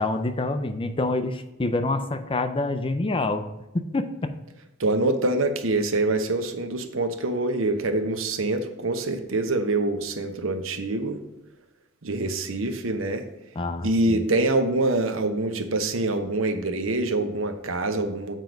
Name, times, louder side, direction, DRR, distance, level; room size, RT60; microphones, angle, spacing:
voice 1, 0.0-3.5 3.7-4.3 13.5-14.2, left 2 dB, 25° left, 9 dB, 0.5 m, -27 dB
voice 2, 4.8-11.2 12.0-13.2 13.8-18.4, right 2 dB, 85° right, 8 dB, 0.9 m, -25 dB
7.7 x 4.5 x 5.2 m, 0.95 s
head